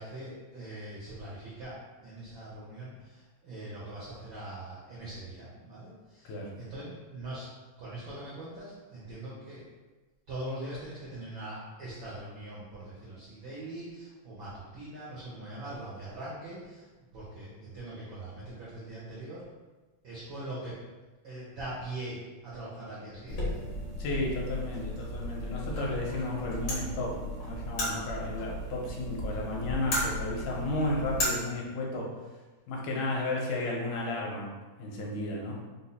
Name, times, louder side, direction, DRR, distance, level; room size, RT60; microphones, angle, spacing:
voice 1, 0.0-9.7 10.3-16.9 17.1-19.4 20.0-20.8 21.2-23.7, right 1 dB, 80° right, -8 dB, 1.1 m, -42 dB
sound 1, 23.3-31.3, equal, 65° left, 1.1 m, -35 dB
voice 2, 24.0-27.2 27.4-32.1 32.7-35.6, left 2 dB, 80° left, -2 dB, 2.3 m, -33 dB
5.3 x 2.0 x 4.1 m, 1.2 s
omnidirectional pair, 3.6 m